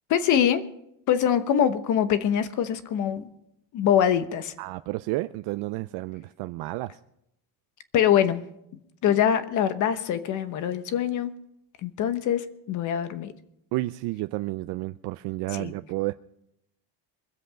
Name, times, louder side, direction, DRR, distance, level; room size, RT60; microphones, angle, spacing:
voice 1, 0.1-0.6 1.1-3.3 3.7-4.5 7.9-8.4 9.0-11.3 11.8-13.3 15.5-15.7, left 9 dB, 45° left, 1.0 m, -24 dB
voice 2, 4.6-6.9 13.7-16.1, right 19 dB, 65° right, 0.5 m, -31 dB
23.5 x 7.8 x 5.1 m
cardioid pair, 175°, 42 cm